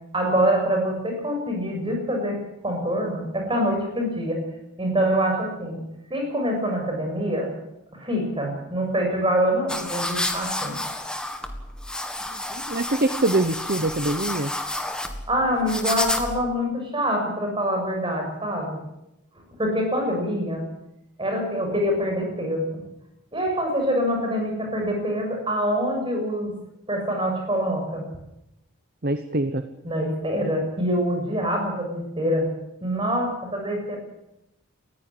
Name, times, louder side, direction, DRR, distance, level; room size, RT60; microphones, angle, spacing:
voice 1, 0.1-4.5 4.8-7.5 7.9-10.8 15.3-18.8 19.6-20.6 21.2-22.8 23.3-26.5 26.9-28.1 29.8-32.5 32.8-34.0, equal, 25° right, 2 dB, 6.7 m, -25 dB
sound 1, 9.7-16.5, left 1 dB, 5° left, 1.7 m, -30 dB
voice 2, 12.5-14.5 29.0-29.6, right 2 dB, 45° right, 10 dB, 1.0 m, -24 dB
19.5 x 15.5 x 9.9 m, 0.87 s
head